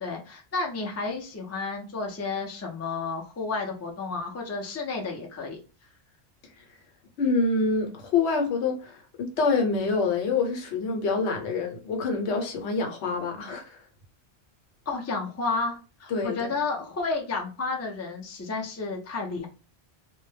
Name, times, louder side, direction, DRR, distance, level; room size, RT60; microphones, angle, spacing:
voice 1, 0.0-5.6 14.9-19.5, left 3 dB, 25° left, 0.3 m, -31 dB
voice 2, 7.2-13.8 16.1-16.6, left 4 dB, 80° left, 0.9 m, -26 dB
2.2 x 2.1 x 3.1 m
omnidirectional pair, 1.1 m